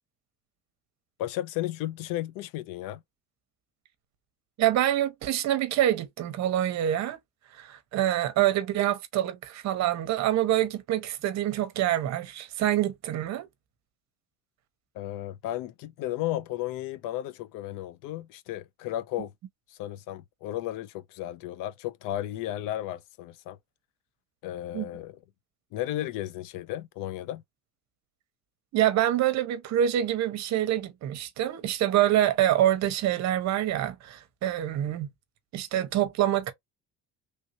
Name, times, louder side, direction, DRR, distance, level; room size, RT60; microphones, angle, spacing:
voice 1, 1.2-3.0 14.9-19.3 19.7-23.6 24.4-25.2 25.7-27.4, left 13 dB, 80° left, 0.5 m, -34 dB
voice 2, 4.6-7.2 7.6-13.5 24.7-24.9 28.7-35.1 35.5-36.5, right 12 dB, 55° right, 0.9 m, -26 dB
3.3 x 2.7 x 2.8 m
cardioid pair, 140°, 32 cm